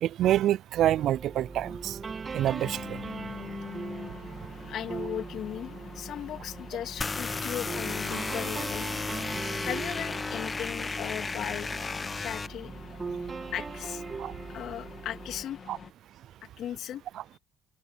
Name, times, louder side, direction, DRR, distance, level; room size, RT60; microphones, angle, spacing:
voice 1, 0.0-2.0 2.3-3.0 14.2-14.3 15.7-15.8, right 12 dB, 65° right, 0.4 m, -26 dB
sound 1, 0.8-15.4, right 5 dB, 35° right, 2.0 m, -40 dB
sound 2, 1.2-15.9, left 7 dB, 45° left, 2.2 m, -46 dB
voice 2, 4.7-8.9 9.6-11.7 12.2-12.7 13.5-14.0 14.5-15.6 16.6-17.0, left 10 dB, 65° left, 2.8 m, -37 dB
sound 3, 7.0-12.5, left 4 dB, 25° left, 1.0 m, -34 dB
cardioid pair, 90°, 0 cm